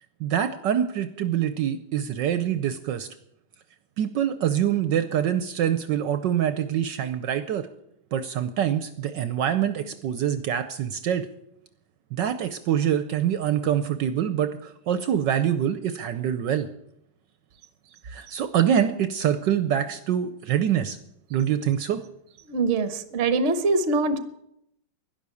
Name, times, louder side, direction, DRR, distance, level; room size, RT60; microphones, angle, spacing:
voice 1, 0.2-3.1 4.0-7.7 8.1-11.3 12.1-16.7 18.0-21.0 21.3-22.0, right 9 dB, 70° right, 11 dB, 1.2 m, -25 dB
voice 2, 22.5-24.2, right 3 dB, 45° right, 12 dB, 1.0 m, -23 dB
12.0 x 10.5 x 8.4 m, 0.79 s
omnidirectional pair, 2.2 m